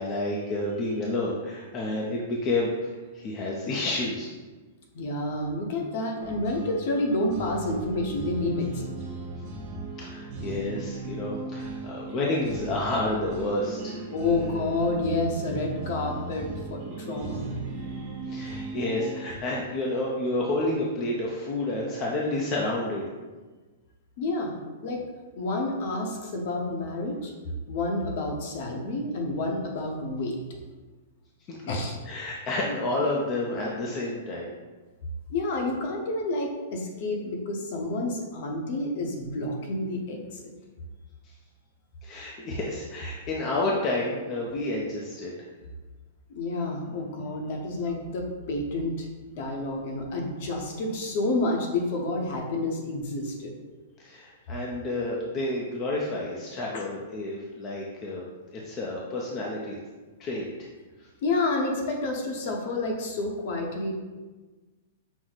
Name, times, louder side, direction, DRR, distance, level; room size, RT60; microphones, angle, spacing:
voice 1, 0.0-4.3 10.0-14.0 18.3-23.0 31.5-31.6 32.1-34.6 41.2-41.3 42.0-45.3 54.0-59.7 60.2-60.4 61.0-61.1, left 2 dB, 25° left, -3 dB, 0.5 m, -30 dB
voice 2, 4.9-8.9 14.1-17.5 24.2-25.0 25.4-27.3 27.7-30.4 31.7-32.0 35.3-40.5 46.3-49.1 49.4-53.5 56.7-56.9 61.2-63.9, left 2 dB, 45° left, 1 dB, 0.8 m, -29 dB
sound 1, 6.2-19.3, right 3 dB, 35° right, 0.7 m, -37 dB
6.0 x 2.0 x 4.0 m, 1.3 s
hypercardioid pair, 165°, 0 cm